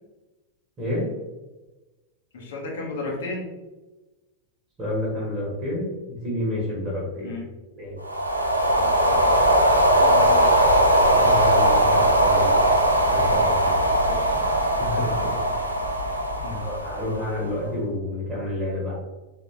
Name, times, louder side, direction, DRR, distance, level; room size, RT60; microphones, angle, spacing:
voice 1, 0.8-1.1 4.8-7.4 7.7-8.0 11.1-12.6 13.0-13.9 14.8-15.4 16.4-18.9, left 1 dB, 25° right, -4 dB, 1.3 m, -29 dB
voice 2, 2.3-3.5 7.2-7.4 8.8-9.5 10.0-10.6 14.1-14.4 15.4-15.6 16.4-16.6, left 2 dB, 60° left, -2 dB, 1.0 m, -34 dB
sound 1, 8.0-17.5, right 1 dB, 85° right, 0.5 m, -20 dB
3.8 x 2.8 x 3.2 m, 1.1 s
figure-of-eight pair, 90°, 0 cm